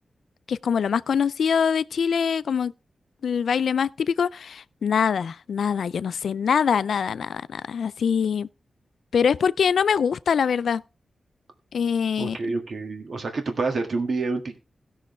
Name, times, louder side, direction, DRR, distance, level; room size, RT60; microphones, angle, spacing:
voice 1, 0.5-2.7 3.2-8.5 9.1-10.8 11.7-12.4, left 7 dB, 85° left, 0.4 m, -23 dB
voice 2, 12.2-14.6, right 3 dB, 65° right, 1.8 m, -28 dB
16.5 x 6.4 x 3.2 m
cardioid pair, 50°, 0 cm